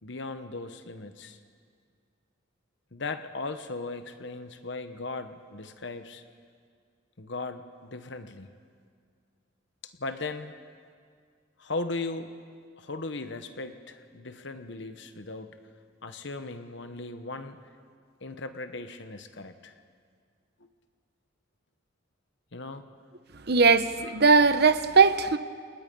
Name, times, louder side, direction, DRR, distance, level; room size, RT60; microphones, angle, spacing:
voice 1, 0.0-1.4 2.9-6.2 7.2-8.5 9.8-10.5 11.6-12.3 12.8-15.6 16.0-17.6 18.2-19.7 22.5-22.8, left 3 dB, 60° left, 1.1 m, -37 dB
voice 2, 23.5-25.4, right 4 dB, 55° right, 0.9 m, -20 dB
29.0 x 27.0 x 5.4 m
head